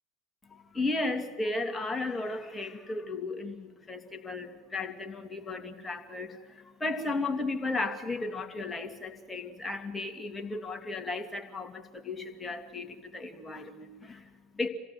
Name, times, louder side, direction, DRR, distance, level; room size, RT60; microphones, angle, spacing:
voice 1, 0.5-14.7, left 2 dB, 15° left, 6 dB, 2.5 m, -35 dB
27.0 x 17.0 x 7.9 m, 1.4 s
figure-of-eight pair, 70°, 0 cm